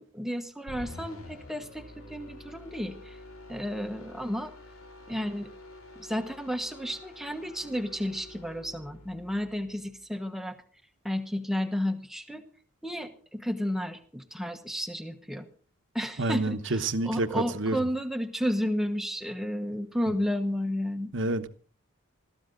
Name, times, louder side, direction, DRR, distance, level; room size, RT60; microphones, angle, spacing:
voice 1, 0.0-3.2 3.5-4.5 5.1-5.5 5.9-10.6 11.0-12.4 12.8-15.5 15.9-21.1, equal, ahead, 1.1 m, -32 dB
sound 1, 0.7-10.0, left 1 dB, 90° left, 3.0 m, -48 dB
voice 2, 16.2-17.8 20.1-20.2 21.1-21.5, right 2 dB, 60° right, 1.1 m, -28 dB
20.5 x 14.0 x 3.9 m
head